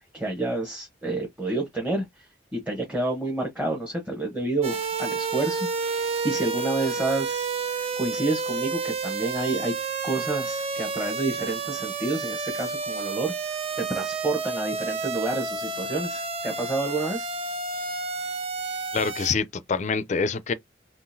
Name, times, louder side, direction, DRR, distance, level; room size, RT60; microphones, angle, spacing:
voice 1, 0.1-2.3 2.5-9.7 10.0-17.3, right 2 dB, 5° right, 1.0 m, -29 dB
sound 1, 4.6-19.4, right 4 dB, 35° right, 0.5 m, -30 dB
voice 2, 18.9-20.5, left 5 dB, 40° left, 0.4 m, -26 dB
3.7 x 2.4 x 2.6 m
head